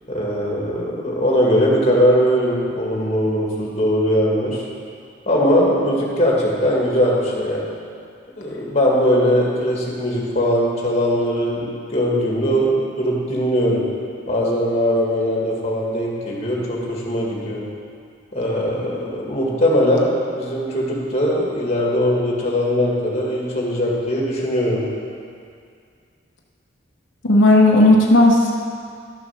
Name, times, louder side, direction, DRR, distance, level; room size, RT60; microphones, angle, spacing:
voice 1, 0.1-4.6 5.3-7.6 8.4-13.8 14.3-17.6 18.3-20.1 20.4-24.8, equal, 35° left, -3 dB, 1.9 m, -20 dB
voice 2, 27.2-28.5, left 1 dB, 85° left, -2 dB, 1.0 m, -13 dB
12.0 x 6.9 x 5.8 m, 2.3 s
head